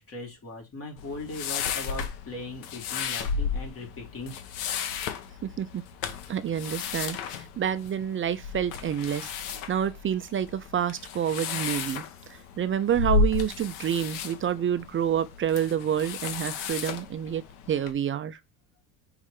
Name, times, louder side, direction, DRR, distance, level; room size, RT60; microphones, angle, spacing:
voice 1, 0.0-4.3, left 2 dB, 35° left, 3.3 m, -39 dB
sound 1, 1.0-17.9, left 5 dB, 85° left, 1.3 m, -33 dB
voice 2, 5.4-5.8 6.3-9.3 9.7-12.0 12.6-17.4 17.7-18.4, right 9 dB, 30° right, 0.6 m, -28 dB
5.4 x 3.6 x 4.9 m
cardioid pair, 115°, 38 cm